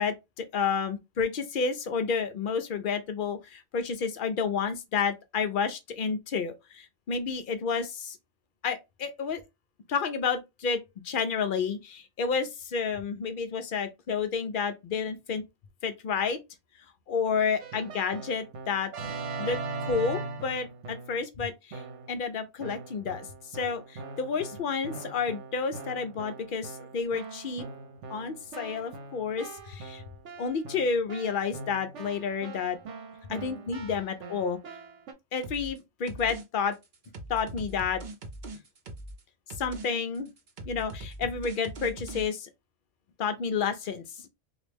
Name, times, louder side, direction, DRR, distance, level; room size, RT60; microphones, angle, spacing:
voice 1, 0.0-8.2 8.6-9.4 9.9-15.4 15.8-16.4 17.1-18.9 19.4-21.8 22.1-23.3 23.5-27.7 28.1-30.0 30.4-32.8 33.3-34.6 35.3-36.7 37.3-38.0 39.6-40.3 40.6-42.5 43.2-44.0, left 5 dB, 60° left, 0.5 m, -30 dB
Keyboard (musical), 17.6-21.3 21.7-22.2 22.6-35.1, right 4 dB, 70° right, 1.0 m, -41 dB
sound 1, 35.4-35.8 36.1-36.4 36.7-39.2 39.5-39.9 40.2-42.2, right 2 dB, 50° right, 0.6 m, -41 dB
3.0 x 2.4 x 3.2 m
omnidirectional pair, 1.3 m